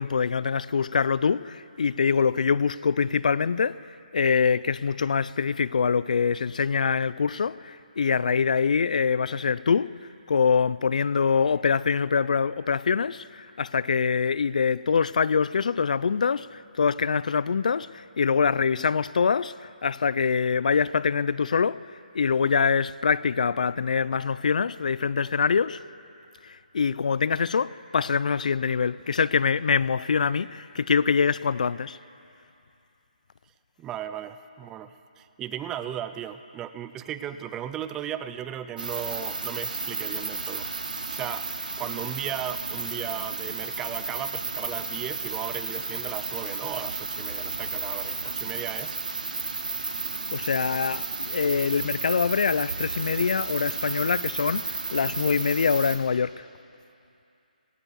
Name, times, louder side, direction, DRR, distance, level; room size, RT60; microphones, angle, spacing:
voice 1, 0.0-3.8 4.1-9.9 10.3-21.8 22.1-25.8 26.7-32.0 50.3-56.4, left 6 dB, 60° left, 0.4 m, -24 dB
voice 2, 33.8-40.7 41.1-41.5 41.8-49.0, right 10 dB, 10° right, 0.4 m, -36 dB
sound 1, 38.8-56.0, right 3 dB, 80° right, 3.0 m, -33 dB
18.5 x 17.0 x 8.2 m
hypercardioid pair, 160°, 5 cm